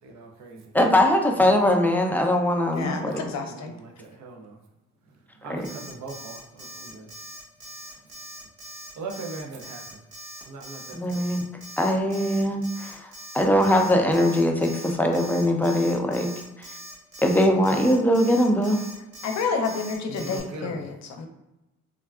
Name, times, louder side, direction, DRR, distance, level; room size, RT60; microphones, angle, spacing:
voice 1, 0.0-0.7 2.8-4.6 5.1-7.1 9.0-10.0 10.4-11.4 20.1-20.8, right 3 dB, 65° right, 2 dB, 0.6 m, -40 dB
voice 2, 0.7-3.1 5.5-5.7 10.9-11.4 11.8-13.1 13.3-16.3 17.2-18.8, left 1 dB, 5° left, 2 dB, 0.4 m, -21 dB
voice 3, 2.7-3.7 19.2-21.3, left 5 dB, 65° left, 4 dB, 0.6 m, -29 dB
Alarm, 5.6-20.4, equal, 50° right, 1.0 m, -42 dB
3.5 x 2.2 x 2.3 m, 0.96 s
cardioid pair, 90°, 30 cm